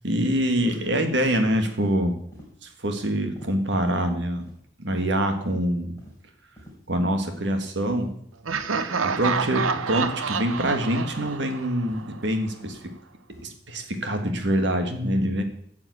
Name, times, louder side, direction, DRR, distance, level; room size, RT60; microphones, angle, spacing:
voice 1, 0.0-2.2 2.6-4.5 4.8-6.0 6.9-8.2 9.0-12.9 13.4-15.4, right 1 dB, 60° right, 6 dB, 1.6 m, -25 dB
sound 1, 1.8-2.0 2.3-2.5 2.8-3.0 3.4-3.5 3.9-4.0 4.4-4.6 4.9-5.1 5.4-5.6 6.0-6.1 6.6-6.7 7.2-7.4 7.9-8.1 8.6-8.8 9.2-9.5 9.9-10.1 10.6-10.7 11.2-11.4 11.9-12.1 12.6-12.8 13.3-13.5 13.9-14.1, equal, 15° left, 3.9 m, -47 dB
Laughter, 8.4-12.3, right 5 dB, 85° right, 0.8 m, -28 dB
9.5 x 7.0 x 8.3 m, 0.68 s
head